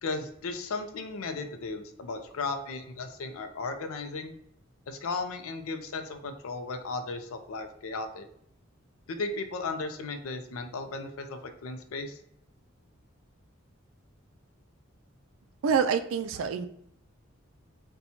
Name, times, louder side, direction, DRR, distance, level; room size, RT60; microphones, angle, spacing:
voice 1, 0.0-4.3 4.9-8.3 9.1-12.2, left 3 dB, 90° left, 7 dB, 0.5 m, -35 dB
voice 2, 15.6-16.7, right 6 dB, 70° right, 8 dB, 0.3 m, -26 dB
4.2 x 2.2 x 2.7 m, 0.72 s
head